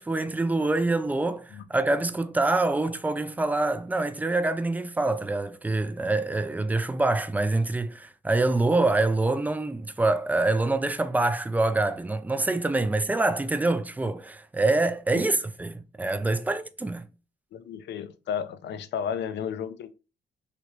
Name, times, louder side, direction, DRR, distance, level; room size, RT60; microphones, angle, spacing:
voice 1, 0.0-17.1, right 2 dB, 10° right, 0.3 m, -25 dB
voice 2, 17.5-19.9, left 8 dB, 65° left, 0.4 m, -33 dB
3.2 x 2.8 x 2.8 m
cardioid pair, 90°, 20 cm